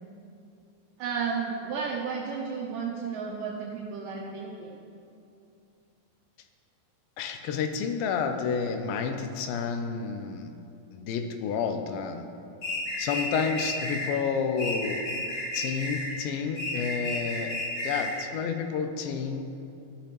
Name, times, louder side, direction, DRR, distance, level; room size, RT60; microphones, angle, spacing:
voice 1, 1.0-4.8, right 5 dB, 85° right, -2 dB, 2.0 m, -33 dB
voice 2, 7.2-10.5 10.9-12.3 13.0-15.0 15.5-19.5, left 6 dB, 80° left, 6 dB, 2.2 m, -30 dB
sound 1, 12.6-14.1 14.6-16.1 16.6-18.2, left 1 dB, 40° left, 2.3 m, -32 dB
13.5 x 5.1 x 2.9 m, 2.6 s
omnidirectional pair, 4.4 m